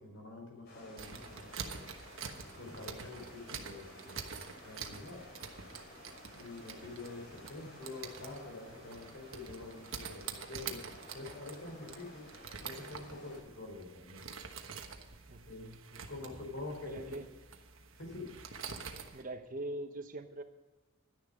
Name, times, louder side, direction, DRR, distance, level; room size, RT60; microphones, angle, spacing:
voice 1, 0.0-1.4 2.5-4.3 4.6-5.3 6.3-10.8 11.1-12.3 12.6-14.2 15.4-15.7 16.1-17.2 18.0-18.3, left 2 dB, 65° left, 1 dB, 4.1 m, -46 dB
sound 1, 0.7-13.4, left 2 dB, 50° left, 3.4 m, -54 dB
sound 2, 1.0-19.2, right 6 dB, 70° right, 1.3 m, -47 dB
voice 2, 15.3-16.0 16.8-17.3 18.7-18.8 19.1-20.4, right 1 dB, 40° right, 8 dB, 1.0 m, -43 dB
11.5 x 10.5 x 5.1 m, 1.2 s
head